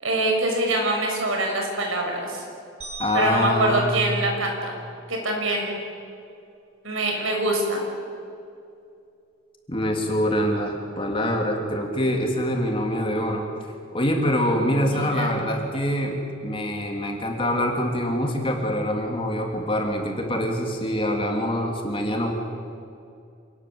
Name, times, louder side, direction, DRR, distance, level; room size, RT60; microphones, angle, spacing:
voice 1, 0.0-2.4 3.1-4.7 5.1-5.8 6.8-7.8 14.6-15.4, right 1 dB, 85° right, 1 dB, 6.3 m, -25 dB
sound 1, 2.8-5.2, right 4 dB, 35° right, 5.7 m, -42 dB
voice 2, 3.0-4.0 9.7-13.4 13.9-16.2 16.4-22.3, equal, 25° left, 1 dB, 3.3 m, -25 dB
27.5 x 19.5 x 7.9 m, 2.5 s
head